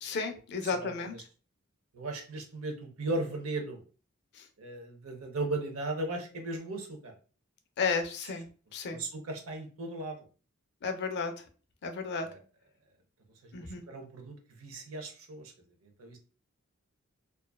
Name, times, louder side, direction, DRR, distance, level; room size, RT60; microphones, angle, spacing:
voice 1, 0.0-1.1 4.3-4.5 7.8-8.5 8.7-9.0 10.8-11.3 11.8-12.3 13.5-13.8, left 4 dB, 55° left, 6 dB, 0.4 m, -33 dB
voice 2, 1.9-3.8 4.6-7.1 8.9-10.2 12.2-12.4 13.4-15.5 15.8-16.2, right 2 dB, 85° right, 4 dB, 0.6 m, -37 dB
2.4 x 2.3 x 2.2 m, 0.38 s
head